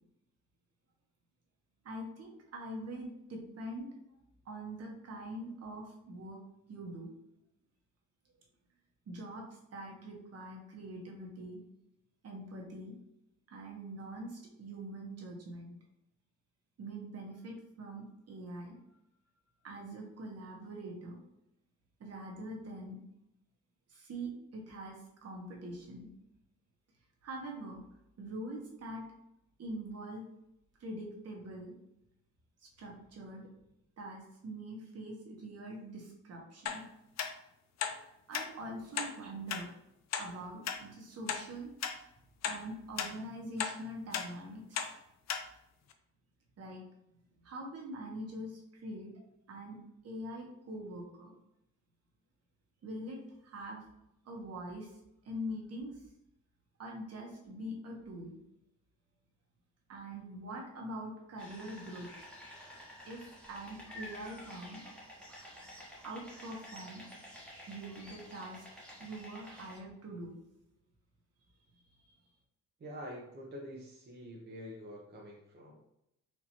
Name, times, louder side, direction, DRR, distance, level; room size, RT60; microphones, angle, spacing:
voice 1, 1.8-3.9 4.4-6.4 6.7-7.1 9.1-11.6 12.2-12.9 13.5-15.7 16.8-19.0 19.6-21.2 22.0-23.0 23.9-26.1 27.2-27.8 28.2-29.0 29.6-30.2 30.8-31.7 32.6-33.5 34.0-36.8 38.3-39.7 40.2-41.7 42.4-44.9 46.6-46.8 47.4-49.1 49.5-51.3 52.8-53.8 54.2-54.9 55.2-55.9 56.8-58.4 59.9-62.1 63.1-64.8 66.0-67.0 67.7-68.7 69.0-70.4, right 1 dB, 55° right, -1 dB, 1.2 m, -44 dB
sound 1, 36.7-36.8 37.2-37.3 37.8-38.0 38.3-38.5 39.0-39.1 39.5-39.6 40.1-40.3 40.7-40.8 41.3-41.4 41.8-42.0 42.4-42.6 43.0-43.1 43.6-43.8 44.1-44.3 44.8-44.9 45.3-45.4 45.9-46.0, left 8 dB, 60° left, 0.5 m, -35 dB
sound 2, 61.4-69.8, left 1 dB, 5° left, 1.3 m, -50 dB
voice 2, 72.8-75.9, equal, 35° right, -3 dB, 0.8 m, -46 dB
4.4 x 2.9 x 2.9 m, 0.80 s
cardioid pair, 90°, 30 cm